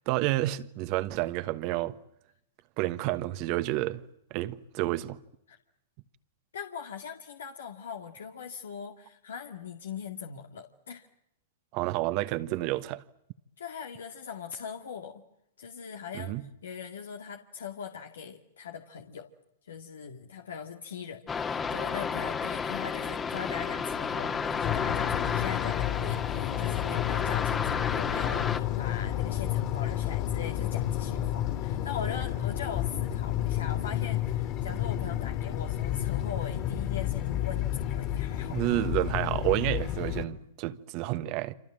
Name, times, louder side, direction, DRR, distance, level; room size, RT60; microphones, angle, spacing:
voice 1, 0.0-1.9 2.8-4.0 4.3-5.2 11.7-13.0 16.1-16.5 38.5-41.5, right 16 dB, 45° right, 1.4 m, -30 dB
voice 2, 6.5-11.0 13.6-15.2 15.6-16.4 16.6-19.3 19.6-38.6, left 7 dB, 75° left, 2.1 m, -40 dB
sound 1, 21.3-28.6, left 6 dB, 20° left, 1.9 m, -32 dB
sound 2, 24.6-40.3, left 12 dB, 40° left, 3.4 m, -31 dB
27.5 x 27.0 x 7.6 m
hypercardioid pair, 110°, 0 cm